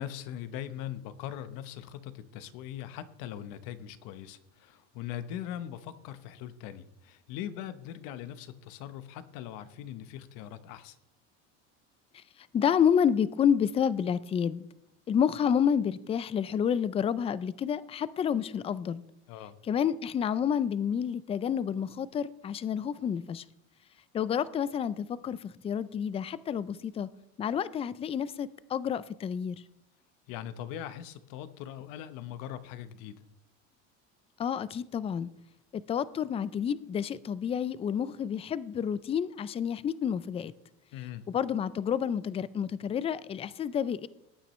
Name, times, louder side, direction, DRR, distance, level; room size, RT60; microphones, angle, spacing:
voice 1, 0.0-11.0 19.3-19.6 30.3-33.2 40.9-41.2, left 11 dB, 65° left, 13 dB, 1.0 m, -41 dB
voice 2, 12.5-14.7 15.1-19.0 19.7-23.4 24.1-27.1 27.4-29.6 34.4-35.3 35.7-40.5 41.3-44.1, left 8 dB, 20° left, 18 dB, 0.3 m, -29 dB
18.0 x 9.1 x 3.2 m, 0.83 s
supercardioid pair, 115°, 35 cm